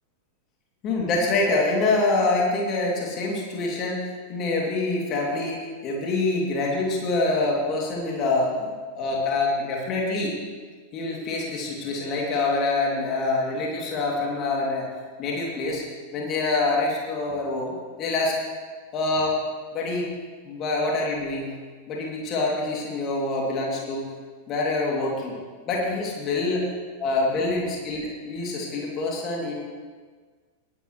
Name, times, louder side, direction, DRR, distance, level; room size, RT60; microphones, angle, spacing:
voice 1, 0.8-4.0 4.3-10.3 10.9-14.9 15.2-15.8 16.1-18.4 18.9-19.4 19.7-20.1 20.4-21.5 21.9-24.0 24.5-25.3 25.6-26.6 27.0-29.5, left 2 dB, 35° left, -2 dB, 2.8 m, -25 dB
19.0 x 11.0 x 3.2 m, 1.5 s
figure-of-eight pair, 90°, 0 cm